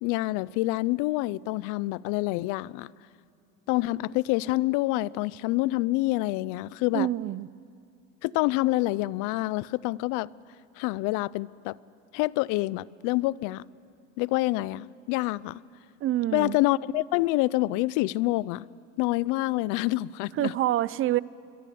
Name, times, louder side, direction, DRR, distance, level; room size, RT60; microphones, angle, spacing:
voice 1, 0.0-2.9 3.7-7.1 8.2-10.3 10.8-11.8 12.1-13.6 14.2-15.6 16.3-18.7 19.0-20.5, left 19 dB, 75° left, 0.6 m, -27 dB
voice 2, 6.9-7.5 16.0-16.6 20.4-21.2, right 14 dB, 40° right, 0.6 m, -26 dB
28.0 x 23.5 x 8.5 m
cardioid pair, 130°, 32 cm